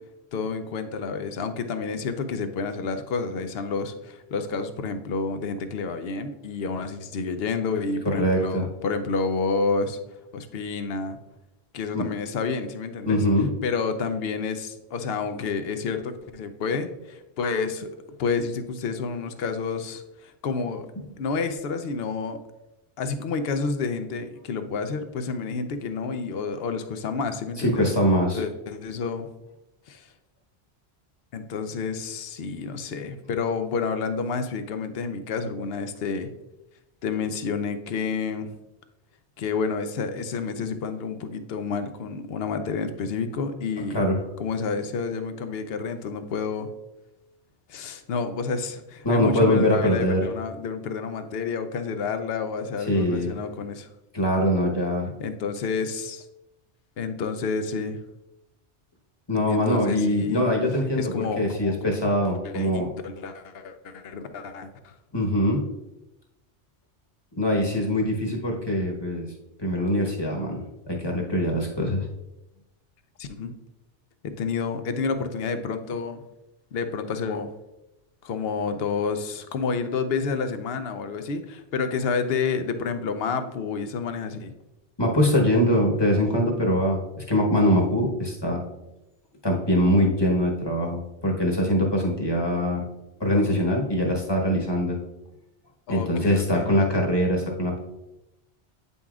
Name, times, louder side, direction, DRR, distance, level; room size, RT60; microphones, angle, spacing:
voice 1, 0.3-11.2 11.7-13.2 13.6-17.9 18.2-20.9 21.2-22.4 23.0-27.9 28.3-29.3 29.9-30.1 31.3-36.3 37.0-38.6 39.4-44.0 44.4-46.7 47.7-53.9 55.2-56.2 57.0-58.0 59.5-60.5 60.9-61.9 62.4-64.9 73.2-73.6 74.2-76.2 76.7-77.5 78.2-84.5 95.9-96.7, left 5 dB, 65° left, 9 dB, 0.8 m, -29 dB
voice 2, 8.1-8.6 11.9-12.1 13.0-13.5 27.6-28.4 43.9-44.2 49.0-50.2 52.9-53.3 54.1-55.1 59.3-62.9 65.1-65.7 67.4-69.3 69.6-72.1 85.0-87.0 87.3-88.6 89.4-92.8 93.2-95.0 95.9-97.8, equal, 25° left, 0 dB, 1.0 m, -23 dB
8.6 x 5.4 x 2.4 m, 0.94 s
omnidirectional pair, 1.2 m